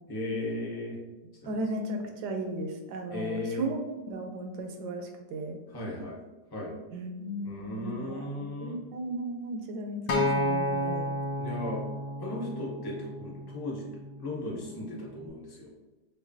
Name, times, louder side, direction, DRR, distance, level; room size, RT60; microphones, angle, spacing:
voice 1, 0.1-1.0 1.4-1.6 3.1-3.7 5.7-6.2 6.5-6.7 7.4-8.8 10.6-10.8 11.4-11.9 12.2-13.9 14.2-15.7, left 2 dB, 40° left, -3 dB, 0.3 m, -36 dB
voice 2, 1.4-5.6 6.9-11.2, right 1 dB, 75° right, 4 dB, 1.1 m, -36 dB
Acoustic guitar, 10.1-14.4 15.2-15.3, left 1 dB, 70° left, 1.1 m, -31 dB
5.9 x 2.3 x 2.6 m, 1.1 s
omnidirectional pair, 1.9 m